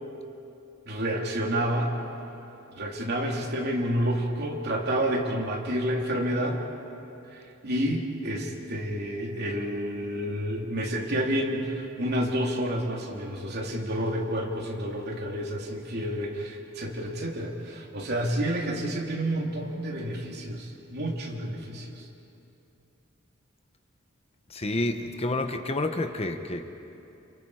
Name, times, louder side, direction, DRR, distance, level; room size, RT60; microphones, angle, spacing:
voice 1, 0.9-1.9 2.8-6.6 7.3-22.0, equal, 55° right, -1 dB, 3.2 m, -29 dB
voice 2, 24.5-26.7, left 2 dB, 30° left, 6 dB, 1.0 m, -29 dB
29.0 x 28.0 x 4.9 m, 2.8 s
head